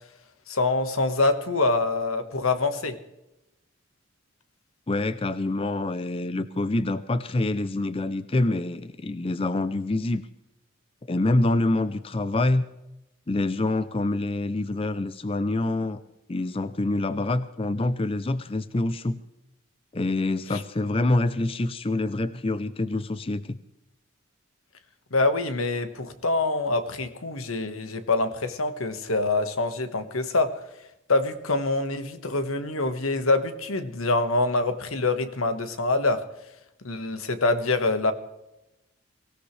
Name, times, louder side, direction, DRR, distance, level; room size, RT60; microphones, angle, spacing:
voice 1, 0.5-3.0 20.5-20.6 25.1-30.6 31.1-36.2 36.8-38.1, left 3 dB, 90° left, 9 dB, 1.5 m, -25 dB
voice 2, 4.9-10.2 11.1-12.7 13.3-16.0 16.3-19.2 19.9-23.6, left 2 dB, 25° left, 13 dB, 0.5 m, -26 dB
23.5 x 16.5 x 3.3 m, 0.93 s
head